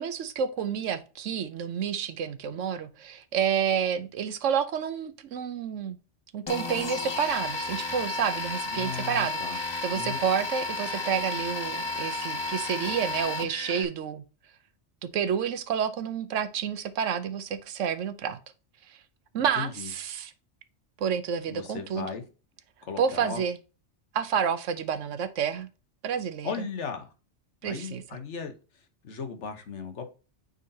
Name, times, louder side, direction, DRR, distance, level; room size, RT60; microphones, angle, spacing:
voice 1, 0.0-6.0 6.3-14.2 15.0-18.4 18.9-19.0 19.3-20.3 21.0-22.1 23.0-23.6 24.1-25.7 26.0-26.7 27.6-28.0, right 7 dB, 85° right, 1.1 m, -29 dB
sound 1, 6.5-13.8, left 3 dB, 30° left, 0.6 m, -32 dB
voice 2, 8.7-9.6 9.9-10.2 19.6-19.9 21.5-22.2 22.8-23.4 26.4-27.1 27.6-28.5 29.0-30.1, left 5 dB, 75° left, 1.4 m, -36 dB
9.1 x 4.0 x 2.7 m
omnidirectional pair, 1.2 m